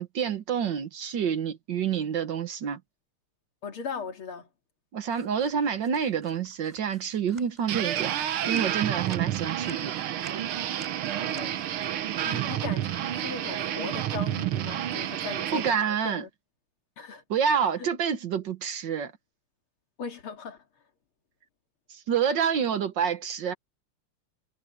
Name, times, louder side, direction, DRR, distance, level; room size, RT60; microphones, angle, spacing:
voice 1, 0.0-2.8 4.9-9.9 15.5-16.2 17.3-19.1 21.9-23.5, right 7 dB, 60° right, 1.6 m, -28 dB
voice 2, 3.6-4.5 11.3-16.3 17.0-17.2 17.8-17.9 20.0-20.6, left 5 dB, 75° left, 3.0 m, -38 dB
sound 1, 5.0-14.1, right 1 dB, 20° right, 5.5 m, -56 dB
sound 2, 7.7-15.7, right 11 dB, 80° right, 1.9 m, -30 dB
omnidirectional pair, 2.4 m